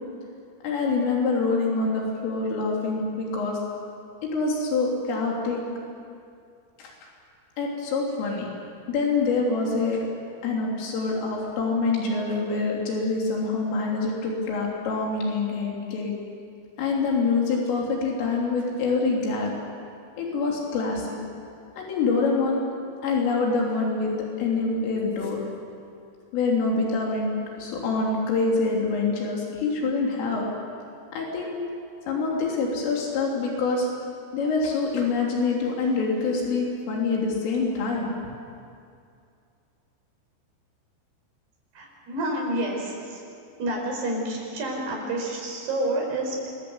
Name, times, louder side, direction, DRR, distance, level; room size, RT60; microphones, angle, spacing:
voice 1, 0.6-3.6 4.2-5.6 6.8-6.9 7.6-8.5 8.9-10.0 10.4-16.1 16.8-19.6 20.2-21.2 21.8-22.6 23.0-25.4 26.3-30.5 31.1-31.6 32.1-33.9 34.3-38.1, left 4 dB, 75° left, -2 dB, 5.7 m, -25 dB
voice 2, 41.7-43.2 43.6-46.5, right 1 dB, 55° right, 0 dB, 6.5 m, -29 dB
26.0 x 22.0 x 8.1 m, 2.4 s
omnidirectional pair, 5.8 m